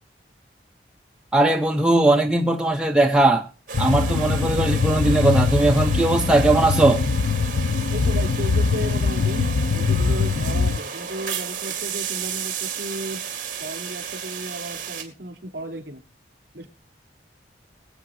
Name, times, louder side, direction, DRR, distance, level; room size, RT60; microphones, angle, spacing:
voice 1, 1.3-3.5 3.8-7.0, right 2 dB, 5° right, 0.7 m, -19 dB
sound 1, 3.7-10.8, left 4 dB, 90° left, 0.5 m, -22 dB
sound 2, 3.7-15.0, right 6 dB, 45° right, 2.1 m, -33 dB
voice 2, 7.9-13.2 13.6-16.0 16.5-16.7, right 1 dB, 60° right, 3.4 m, -34 dB
24.0 x 8.2 x 2.7 m
head